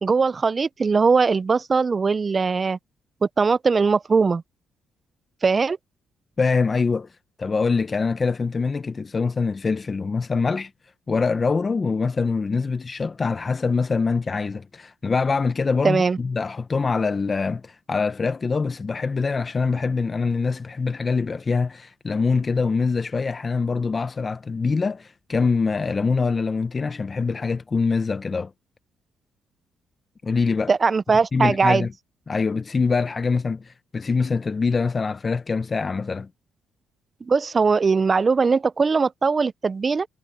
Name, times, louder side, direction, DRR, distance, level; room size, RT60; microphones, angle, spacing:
voice 1, 0.0-2.8 3.4-4.4 5.4-5.8 15.8-16.2 30.7-31.9 37.3-40.1, right 4 dB, 35° right, 0.5 m, -20 dB
voice 2, 6.4-7.1 7.4-10.7 11.1-28.5 30.2-30.7 31.3-31.9 32.3-36.3, left 4 dB, 35° left, 1.0 m, -24 dB
cardioid pair, 90°, 0 cm